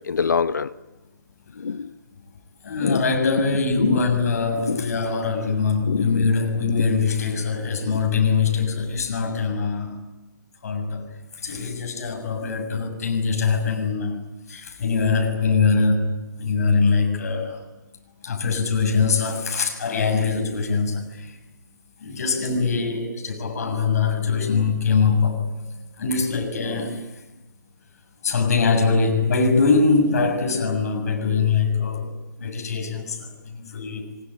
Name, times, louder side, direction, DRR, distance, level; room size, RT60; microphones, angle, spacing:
voice 1, 0.1-0.7 1.6-1.9 2.8-3.0 3.8-4.0 4.7-4.8 5.9-6.3, left 5 dB, 65° left, 1.0 m, -24 dB
voice 2, 2.6-10.0 10.6-11.1 11.4-14.2 14.5-17.6 18.2-21.4 22.0-25.5 26.0-27.1 28.2-34.1, left 4 dB, 50° left, 6.8 m, -22 dB
24.0 x 21.0 x 9.8 m
figure-of-eight pair, 145°, 10 cm